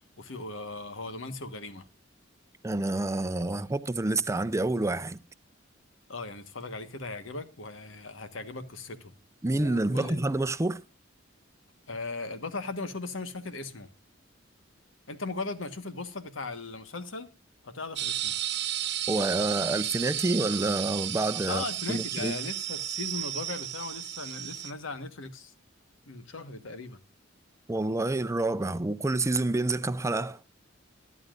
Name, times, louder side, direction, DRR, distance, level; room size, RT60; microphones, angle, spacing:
voice 1, 0.2-1.8 6.1-9.1 9.5-10.2 11.9-13.9 15.1-17.3 17.6-18.3 21.4-25.5 26.0-27.0, left 3 dB, 85° left, 1.4 m, -38 dB
voice 2, 2.6-5.2 9.4-10.8 19.1-22.3 27.7-30.4, right 2 dB, 15° right, 0.5 m, -28 dB
sound 1, 18.0-24.7, right 12 dB, 60° right, 1.0 m, -33 dB
22.5 x 11.0 x 2.5 m
head